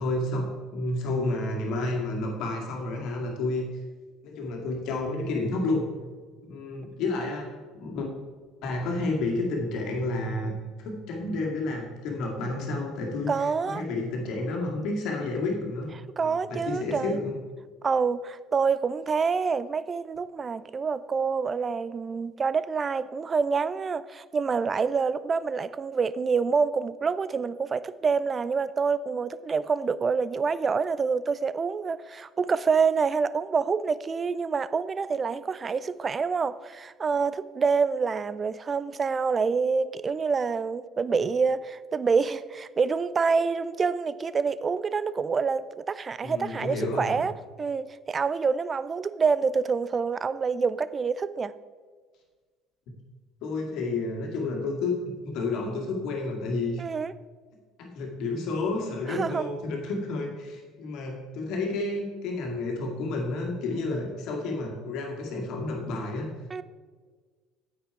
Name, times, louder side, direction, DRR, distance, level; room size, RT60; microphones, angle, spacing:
voice 1, 0.0-3.7 4.2-5.9 6.5-8.1 8.6-10.5 10.8-15.9 16.2-17.3 46.2-47.2 53.4-56.8 57.8-66.3, left 2 dB, 55° left, 2.1 m, -30 dB
voice 2, 13.3-13.8 16.2-17.2 17.8-47.3 47.6-51.5 56.8-57.1 59.1-59.5 66.5-66.6, right 5 dB, 30° right, 0.4 m, -27 dB
9.2 x 8.1 x 4.7 m
figure-of-eight pair, 60°, 0 cm